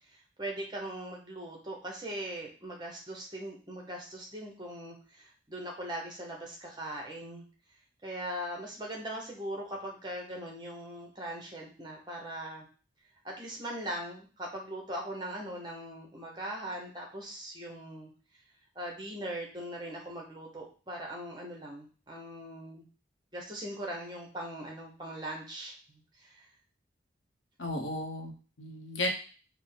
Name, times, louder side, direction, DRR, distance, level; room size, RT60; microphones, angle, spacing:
voice 1, 0.1-7.5 8.0-12.7 13.2-18.1 18.7-22.8 23.3-26.5, right 1 dB, 25° right, 0 dB, 0.9 m, -40 dB
voice 2, 27.6-29.1, left 1 dB, 75° left, 3 dB, 0.8 m, -34 dB
4.9 x 2.1 x 3.9 m, 0.37 s
head